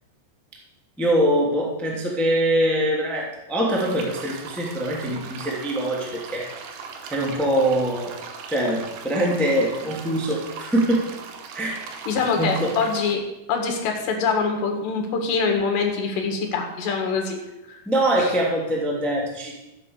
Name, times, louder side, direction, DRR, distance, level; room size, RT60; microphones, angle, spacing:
voice 1, 1.0-6.5 7.1-8.1 8.5-11.1 11.5-11.8 12.4-12.7 17.9-19.5, right 1 dB, ahead, -3 dB, 1.8 m, -23 dB
sound 1, 3.7-13.2, right 5 dB, 85° right, 3.4 m, -39 dB
voice 2, 12.1-13.2 13.5-17.4 17.7-17.8 18.1-18.3, left 5 dB, 80° left, 2 dB, 4.2 m, -24 dB
14.5 x 8.3 x 6.7 m, 0.96 s
omnidirectional pair, 4.8 m